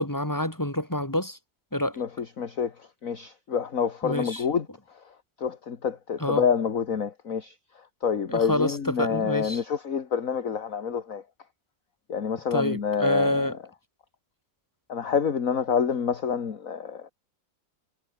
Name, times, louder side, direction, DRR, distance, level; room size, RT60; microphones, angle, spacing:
voice 1, 0.0-1.4 1.7-2.0 4.0-4.4 6.2-6.4 8.3-9.6 12.5-13.5, left 1 dB, 10° left, 5.1 m, -27 dB
voice 2, 2.0-11.2 12.1-13.6 14.9-17.1, left 6 dB, 45° left, 2.0 m, -28 dB
omnidirectional pair, 2.0 m